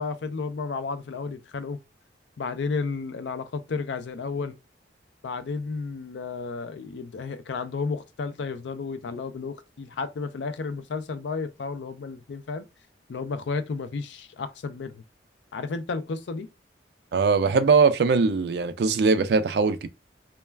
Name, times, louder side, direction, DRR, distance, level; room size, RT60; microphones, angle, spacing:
voice 1, 0.0-1.8 2.4-4.6 5.2-12.6 13.1-15.0 15.5-16.5, left 4 dB, 85° left, 0.4 m, -32 dB
voice 2, 17.1-19.9, right 4 dB, 65° right, 0.3 m, -21 dB
2.3 x 2.2 x 3.2 m
head